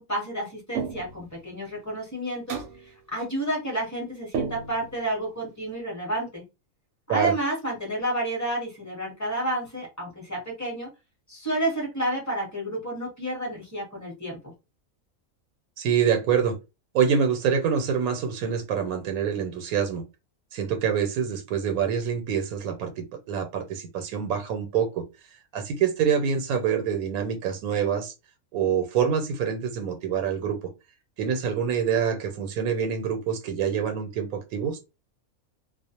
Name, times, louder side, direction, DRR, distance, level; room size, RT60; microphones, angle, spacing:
voice 1, 0.0-6.4 7.1-10.9 11.3-14.4, right 1 dB, 15° left, 0.8 m, -30 dB
sound 1, 0.7-1.3 2.5-2.9 4.3-5.0, right 6 dB, 65° right, 0.8 m, -32 dB
voice 2, 15.8-16.6 16.9-20.0 20.5-25.0 25.5-28.1 28.5-30.6 31.2-34.8, right 7 dB, 90° right, 1.0 m, -26 dB
2.4 x 2.0 x 2.8 m
omnidirectional pair, 1.5 m